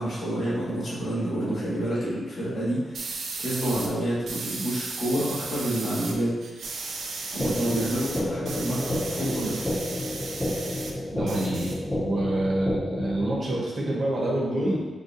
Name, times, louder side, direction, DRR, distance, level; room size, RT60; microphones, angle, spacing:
voice 1, 0.0-3.1 3.4-6.3 7.3-9.6, right 1 dB, 55° left, -9 dB, 1.3 m, -28 dB
sound 1, 2.9-3.9 4.3-6.1 6.4-10.9 11.2-12.2, right 3 dB, 75° right, 0.4 m, -35 dB
sound 2, 7.4-13.4, left 1 dB, 10° left, 0.3 m, -30 dB
voice 2, 11.1-14.9, right 1 dB, 45° right, -5 dB, 0.7 m, -27 dB
3.9 x 2.6 x 2.5 m, 1.2 s
wide cardioid pair, 165°, 0 cm